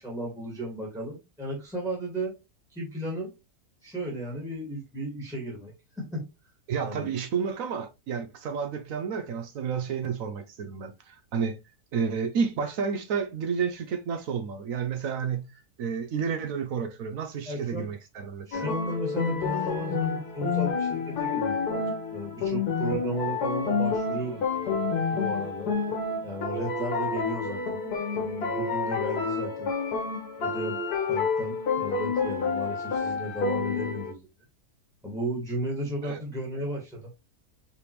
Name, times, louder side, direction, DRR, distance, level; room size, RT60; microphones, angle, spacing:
voice 1, 0.0-2.3 2.7-3.3 3.8-6.2 6.8-7.1 17.5-17.9 18.5-21.8 22.1-24.4 25.1-25.7 26.2-27.8 28.1-29.7 30.4-30.8 31.1-34.3 35.0-37.1, right 1 dB, ahead, 1.4 m, -34 dB
voice 2, 6.7-11.6 11.9-15.5 15.8-18.7 36.0-36.2, right 6 dB, 65° right, 1.0 m, -31 dB
sound 1, 18.5-34.1, left 4 dB, 75° left, 1.6 m, -29 dB
4.8 x 3.4 x 3.0 m
omnidirectional pair, 1.7 m